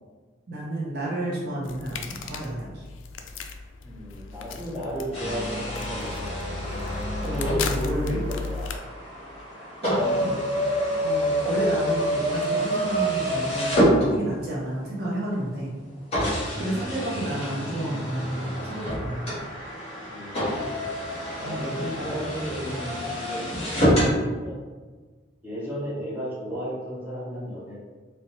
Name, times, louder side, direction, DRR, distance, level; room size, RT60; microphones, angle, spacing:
voice 1, 0.5-2.8 7.2-8.2 9.8-10.4 11.0-15.7 16.6-19.4 21.4-22.3 22.7-22.9, right 1 dB, 50° right, -6 dB, 0.7 m, -31 dB
sound 1, 1.6-8.8, left 4 dB, 80° left, 0.3 m, -35 dB
voice 2, 3.8-6.4 6.6-6.8 7.3-8.7 20.1-20.6 21.4-24.6 25.4-27.8, equal, 10° right, -9 dB, 1.0 m, -34 dB
sound 2, 5.1-14.6 15.3-15.4 16.1-24.1, equal, 30° left, 1.4 m, -27 dB
4.1 x 2.2 x 2.9 m, 1.4 s
head